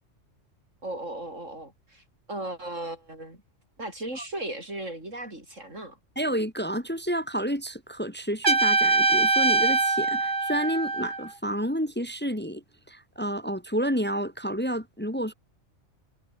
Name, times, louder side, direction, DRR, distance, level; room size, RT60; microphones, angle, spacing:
voice 1, 0.8-3.4 3.8-6.0, right 1 dB, 85° right, 8.5 m, -36 dB
voice 2, 6.2-15.3, equal, 10° left, 1.8 m, -30 dB
Trumpet, 8.4-11.3, right 3 dB, 40° right, 2.3 m, -23 dB
omnidirectional pair, 1.3 m